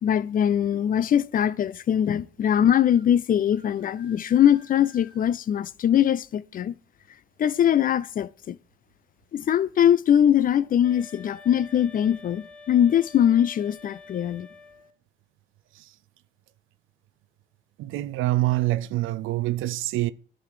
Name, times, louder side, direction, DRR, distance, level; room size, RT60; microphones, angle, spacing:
voice 1, 0.0-6.7 7.4-8.6 9.3-14.5, left 10 dB, 45° left, 0.4 m, -22 dB
sound 1, 2.8-3.1 3.5-5.3, left 4 dB, 25° right, 2.0 m, -54 dB
sound 2, 10.8-15.0, left 3 dB, 5° left, 2.0 m, -47 dB
voice 2, 17.8-20.1, right 16 dB, 90° right, 0.5 m, -25 dB
11.0 x 4.0 x 4.7 m
cardioid pair, 90°, 20 cm